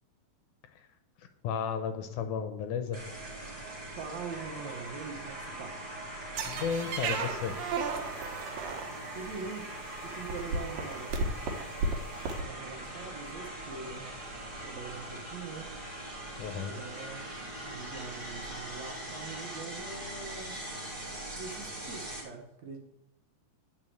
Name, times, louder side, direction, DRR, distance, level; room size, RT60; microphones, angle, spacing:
voice 1, 1.4-3.1 6.5-7.6 16.4-16.8, left 7 dB, 75° left, 8 dB, 2.0 m, -33 dB
sound 1, 2.9-22.2, right 1 dB, 25° right, 1.2 m, -41 dB
voice 2, 4.0-5.8 9.1-9.7 10.0-11.2 12.4-14.1 14.6-15.7 16.5-17.3 17.6-20.5 21.4-22.8, right 4 dB, 60° right, 2 dB, 2.3 m, -43 dB
sound 2, 6.4-9.2 10.0-10.1 10.3-12.4, right 4 dB, 80° right, 2.9 m, -33 dB
9.7 x 4.8 x 7.8 m, 0.88 s
omnidirectional pair, 4.0 m